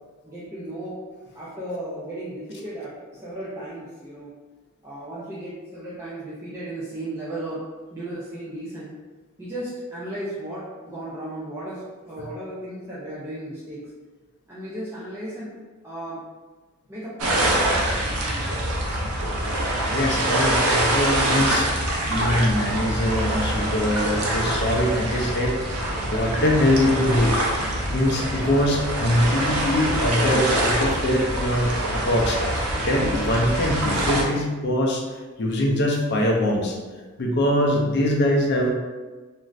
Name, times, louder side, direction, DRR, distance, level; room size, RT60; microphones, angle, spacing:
voice 1, 0.2-1.0 1.3-4.3 4.8-7.6 7.9-8.9 9.4-13.8 14.5-15.5 15.8-16.2 16.9-18.6, right 1 dB, 10° right, -9 dB, 0.4 m, -35 dB
sound 1, 17.2-34.2, right 1 dB, 85° right, 0.6 m, -24 dB
voice 2, 19.9-21.7 22.1-25.6 26.1-27.3 27.9-35.0 35.4-36.8 37.2-38.7, left 1 dB, 50° left, -1 dB, 0.5 m, -23 dB
2.5 x 2.4 x 3.1 m, 1.3 s
head